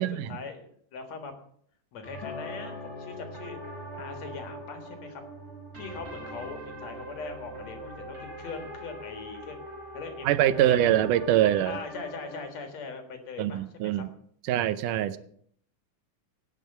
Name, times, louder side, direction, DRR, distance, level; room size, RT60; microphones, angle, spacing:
voice 1, 0.0-1.3 1.9-3.6 4.0-5.2 5.8-9.7 9.9-10.9 11.6-14.1, left 5 dB, 60° left, 6 dB, 2.8 m, -41 dB
sound 1, 2.0-12.5, right 1 dB, 20° right, 5.4 m, -42 dB
Acoustic guitar, 2.2-6.5 7.3-7.4, left 4 dB, 80° left, 2.7 m, -45 dB
voice 2, 10.3-11.8 13.4-14.1 14.5-15.2, right 12 dB, 80° right, 14 dB, 2.2 m, -24 dB
17.5 x 6.9 x 6.6 m, 0.63 s
omnidirectional pair, 3.7 m